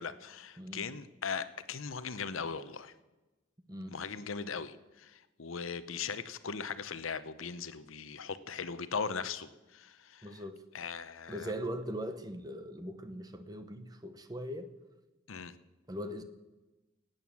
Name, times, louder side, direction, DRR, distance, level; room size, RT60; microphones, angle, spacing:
voice 1, 0.0-2.9 3.9-10.3 10.7-11.5 15.3-15.5, left 5 dB, 80° left, 13 dB, 0.8 m, -39 dB
voice 2, 0.6-0.9 3.7-4.0 10.2-10.6 11.3-14.7 15.9-16.2, equal, 20° right, 9 dB, 0.9 m, -40 dB
17.0 x 9.1 x 7.1 m, 1.1 s
head